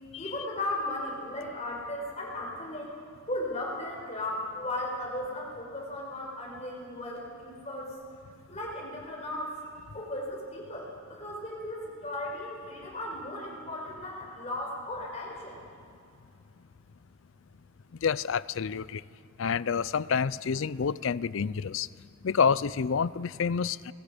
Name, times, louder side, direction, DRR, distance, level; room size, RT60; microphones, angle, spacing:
voice 1, 0.2-3.0 3.3-8.0 8.5-15.6, left 1 dB, 30° left, -2 dB, 4.8 m, -36 dB
voice 2, 18.0-19.0 19.4-21.9 22.2-23.9, left 6 dB, 65° left, 19 dB, 0.4 m, -28 dB
28.5 x 21.0 x 5.1 m, 2.5 s
head